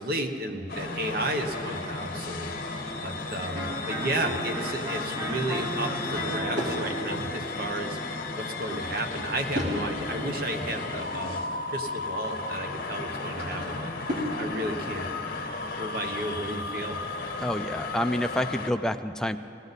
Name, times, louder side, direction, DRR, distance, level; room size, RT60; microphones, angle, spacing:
voice 1, 0.0-2.5 3.0-11.4 11.7-13.9 14.4-15.1 15.8-17.0, right 1 dB, 55° right, 5 dB, 1.0 m, -33 dB
sound 1, 0.7-18.7, left 3 dB, 55° left, 1.2 m, -34 dB
Electric guitar, 3.5-9.2, equal, 30° right, 2.1 m, -36 dB
Drawer open or close / Wood, 5.8-6.8 8.5-9.8 10.4-11.5 12.8-14.4, left 1 dB, 80° right, 3.7 m, -36 dB
voice 2, 17.4-19.4, left 1 dB, 5° left, 7 dB, 0.3 m, -28 dB
18.5 x 17.0 x 4.1 m, 2.9 s
head